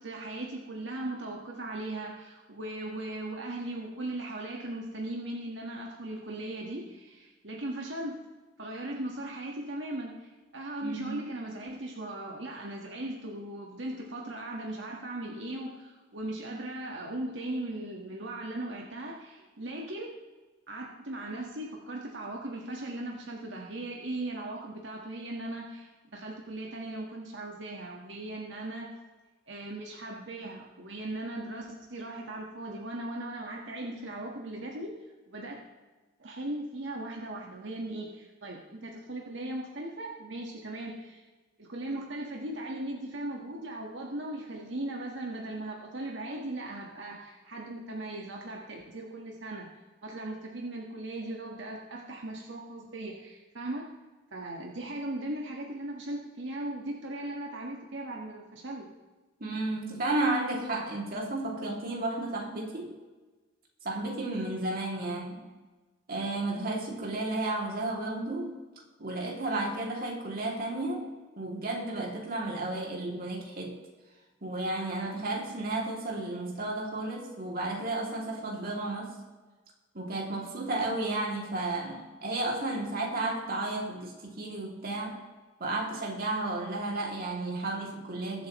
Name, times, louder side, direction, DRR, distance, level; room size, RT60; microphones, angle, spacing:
voice 1, 0.0-8.2 8.6-20.2 20.7-28.9 29.5-34.9 35.3-35.6 36.2-41.2 41.6-49.7 50.0-53.9 54.3-58.9, right 1 dB, 80° right, -1 dB, 1.6 m, -38 dB
voice 2, 10.8-11.2 59.4-62.9 63.8-65.4 66.1-68.6 69.0-73.8 74.4-79.1 79.9-85.2 85.6-88.5, right 2 dB, 55° right, -1 dB, 2.7 m, -33 dB
21.5 x 7.9 x 3.2 m, 1.2 s
head